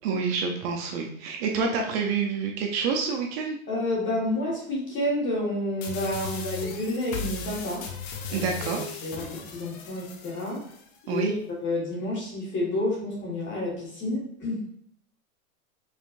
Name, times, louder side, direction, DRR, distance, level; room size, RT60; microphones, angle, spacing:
voice 1, 0.0-3.6 8.3-8.9 11.1-11.3, right 5 dB, 45° right, 2 dB, 0.7 m, -28 dB
voice 2, 3.7-7.9 8.3-8.5 9.0-10.6 11.0-11.3 11.6-14.6, left 1 dB, 25° left, -4 dB, 1.7 m, -29 dB
sound 1, 5.8-10.8, left 5 dB, 45° left, 0.8 m, -37 dB
5.0 x 3.1 x 2.6 m, 0.64 s
supercardioid pair, 140°, 43 cm